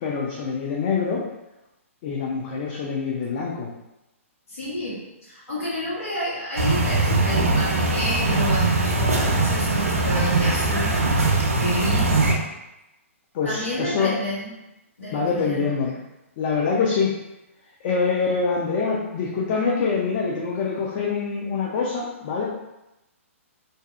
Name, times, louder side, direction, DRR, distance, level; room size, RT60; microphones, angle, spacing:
voice 1, 0.0-1.2 2.0-3.7 13.3-14.1 15.1-15.9 16.4-17.1 17.8-22.4, left 5 dB, 40° left, -3 dB, 0.4 m, -25 dB
voice 2, 4.5-10.9 11.6-12.3 13.4-14.5 15.0-15.7, equal, 85° left, -10 dB, 0.9 m, -29 dB
sound 1, 6.6-12.4, right 2 dB, 85° right, 0.5 m, -21 dB
2.6 x 2.0 x 2.3 m, 0.94 s
hypercardioid pair, 135°, 8 cm